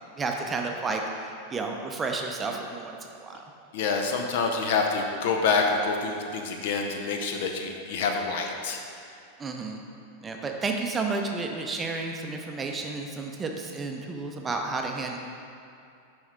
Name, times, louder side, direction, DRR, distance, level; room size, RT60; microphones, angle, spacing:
voice 1, 0.2-3.4 9.4-9.8 10.2-15.2, right 3 dB, 20° right, 2 dB, 0.6 m, -31 dB
voice 2, 3.7-8.8, left 4 dB, 50° left, 3 dB, 0.6 m, -27 dB
7.0 x 5.3 x 3.6 m, 2.6 s
figure-of-eight pair, 90°, 0 cm